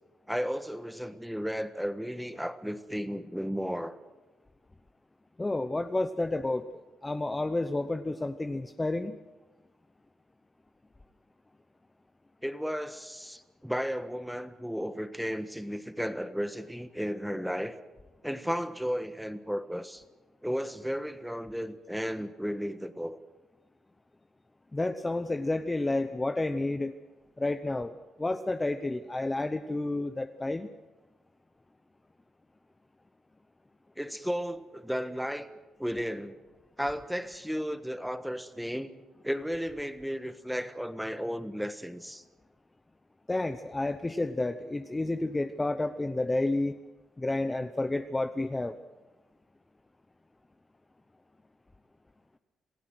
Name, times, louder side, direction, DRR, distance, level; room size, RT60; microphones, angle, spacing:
voice 1, 0.3-4.0 12.4-17.8 18.2-20.0 20.4-23.2 34.0-35.5 35.8-36.4 36.8-38.9 39.2-42.2, equal, ahead, 10 dB, 1.5 m, -34 dB
voice 2, 5.4-9.2 24.7-26.9 27.4-27.9 28.2-30.7 43.3-46.8 47.2-48.8, left 2 dB, 15° left, 8 dB, 0.9 m, -30 dB
27.0 x 16.0 x 6.3 m, 1.2 s
cardioid pair, 90°, 0 cm